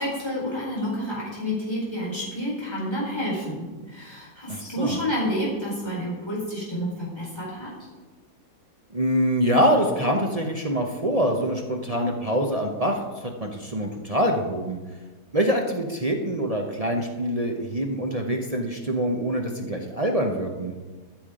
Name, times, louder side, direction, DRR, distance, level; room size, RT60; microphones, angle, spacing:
voice 1, 0.0-7.9, equal, 15° left, -6 dB, 4.3 m, -29 dB
voice 2, 4.5-5.0 8.9-14.8 15.3-20.7, equal, 35° right, 1 dB, 0.6 m, -25 dB
13.5 x 7.2 x 5.0 m, 1.3 s
omnidirectional pair, 1.8 m